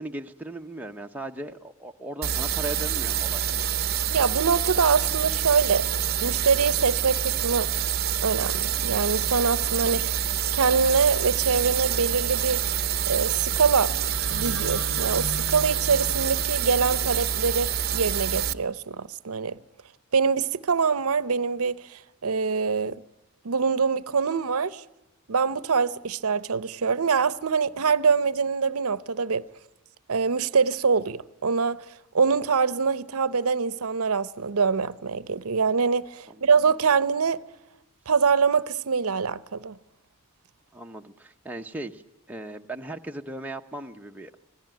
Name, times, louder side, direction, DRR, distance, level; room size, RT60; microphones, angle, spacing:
voice 1, 0.0-3.4 36.3-36.4 40.7-42.0 42.3-44.3, right 1 dB, 5° right, 0.9 m, -37 dB
sound 1, 2.2-18.5, right 9 dB, 45° right, 0.8 m, -27 dB
voice 2, 4.1-5.9 6.2-7.7 8.2-10.1 10.5-12.6 13.1-13.9 14.3-19.6 20.1-23.0 23.4-24.8 25.3-29.4 30.1-31.8 32.1-37.4 38.1-39.7, right 5 dB, 80° right, 0.7 m, -24 dB
sound 2, 13.9-18.0, left 3 dB, 55° left, 4.6 m, -40 dB
25.5 x 17.0 x 9.1 m
head